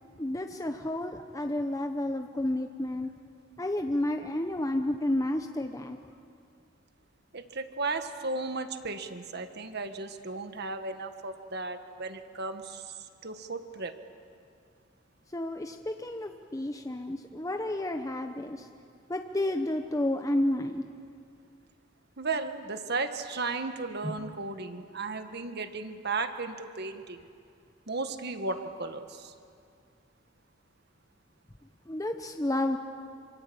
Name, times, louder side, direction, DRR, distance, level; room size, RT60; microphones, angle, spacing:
voice 1, 0.2-3.1 3.6-6.0 15.3-18.7 19.1-20.8 24.0-24.2 31.9-32.8, left 1 dB, 15° left, 5 dB, 0.9 m, -31 dB
voice 2, 7.3-12.9 13.2-13.9 22.2-27.2 27.9-29.3, right 3 dB, 55° right, 8 dB, 1.7 m, -35 dB
27.5 x 24.5 x 8.8 m, 2.3 s
head